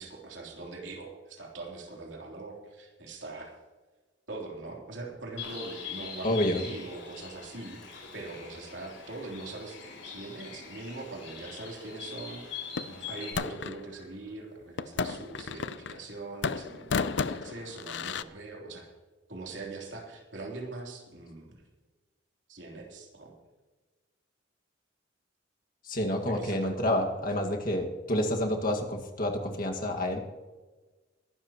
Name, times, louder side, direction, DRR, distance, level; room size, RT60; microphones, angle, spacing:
voice 1, 0.0-3.6 4.3-18.9 19.3-21.6 22.5-23.3 26.3-26.7, right 2 dB, 65° right, 0 dB, 3.4 m, -42 dB
Bird, 5.4-13.3, left 6 dB, 85° left, 5.2 m, -43 dB
voice 2, 6.2-6.6 25.8-30.2, left 1 dB, 45° left, 2 dB, 1.9 m, -29 dB
sound 1, 12.8-13.8 14.8-16.1 16.4-18.2, left 5 dB, 65° left, 0.5 m, -33 dB
22.0 x 12.0 x 3.0 m, 1.2 s
head